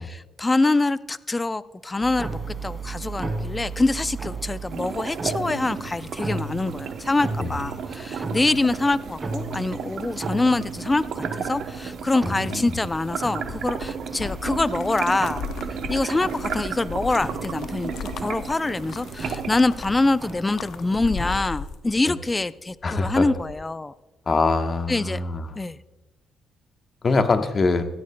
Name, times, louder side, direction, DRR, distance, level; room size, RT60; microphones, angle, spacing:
voice 1, 0.1-15.4 15.9-23.9 24.9-25.2 25.6-25.8, left 2 dB, 20° left, 16 dB, 0.4 m, -25 dB
sound 1, 2.0-21.4, right 3 dB, 25° right, 2.3 m, -36 dB
sound 2, 4.7-19.6, right 7 dB, 70° right, 0.8 m, -34 dB
voice 2, 12.2-12.7 22.0-22.1 22.8-23.3 24.3-25.6 27.0-27.9, left 3 dB, 40° left, 7 dB, 1.1 m, -23 dB
sound 3, 12.8-22.4 22.7-23.6, left 6 dB, 75° left, 0.6 m, -37 dB
17.0 x 13.5 x 2.2 m, 1.1 s
cardioid pair, 90°, 0 cm